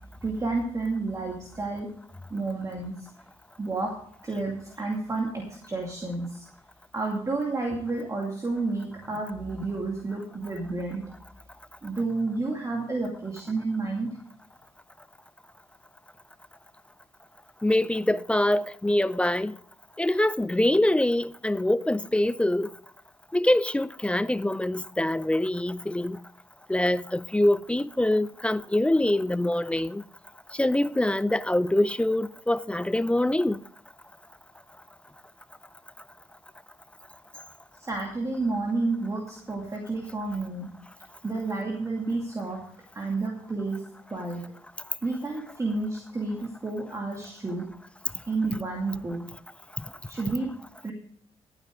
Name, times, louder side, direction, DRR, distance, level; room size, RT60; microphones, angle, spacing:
voice 1, 0.2-1.9 2.3-3.1 3.6-3.9 4.2-6.4 6.9-11.0 11.8-14.1 37.8-40.7 41.2-42.6 42.9-43.8 44.1-44.4 45.0-47.7 48.3-49.2 50.1-50.5 50.8-50.9, right 3 dB, 25° right, 2.4 m, -30 dB
voice 2, 17.6-19.6 20.0-22.7 23.3-26.2 26.7-30.0 30.5-33.6 49.8-49.9, left 1 dB, 10° left, 0.4 m, -24 dB
14.0 x 9.0 x 4.8 m
cardioid pair, 110°, 12 cm